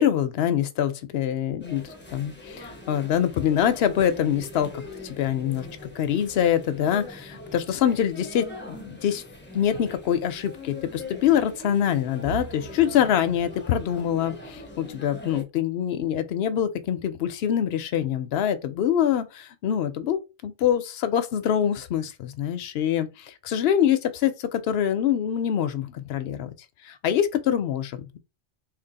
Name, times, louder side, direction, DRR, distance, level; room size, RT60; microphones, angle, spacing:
voice 1, 0.0-1.8 2.1-5.7 6.0-9.2 9.5-26.5 26.9-28.2, left 9 dB, 65° left, 0.8 m, -25 dB
sound 1, 1.6-15.4, left 1 dB, 10° left, 0.6 m, -41 dB
2.7 x 2.6 x 3.9 m
omnidirectional pair, 1.2 m